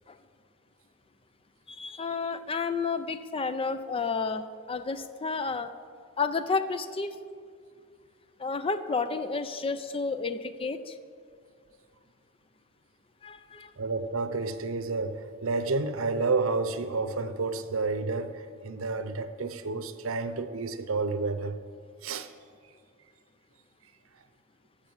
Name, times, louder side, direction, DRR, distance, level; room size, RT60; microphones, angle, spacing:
voice 1, 1.7-5.7 6.2-7.1 8.4-11.0 13.2-13.7, left 4 dB, 30° left, 11 dB, 0.5 m, -31 dB
voice 2, 13.8-21.6 22.0-22.3, right 3 dB, 85° right, 10 dB, 0.7 m, -30 dB
11.5 x 6.8 x 7.2 m, 2.1 s
head